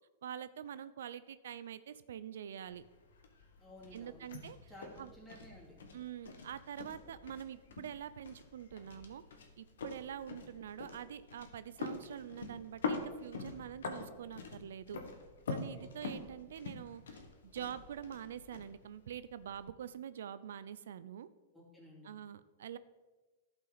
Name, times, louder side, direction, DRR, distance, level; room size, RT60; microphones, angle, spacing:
voice 1, 0.2-2.8 3.9-4.7 5.0-5.1 5.9-9.2 9.6-15.0 15.5-21.3 22.0-22.8, right 9 dB, 80° right, 14 dB, 0.4 m, -45 dB
sound 1, 2.6-19.6, left 4 dB, 90° left, 1.2 m, -45 dB
voice 2, 3.6-4.3 4.7-5.7 15.8-16.1 21.5-22.1, equal, 5° left, -5 dB, 2.7 m, -55 dB
12.0 x 5.6 x 4.0 m, 1.2 s
hypercardioid pair, 135°, 0 cm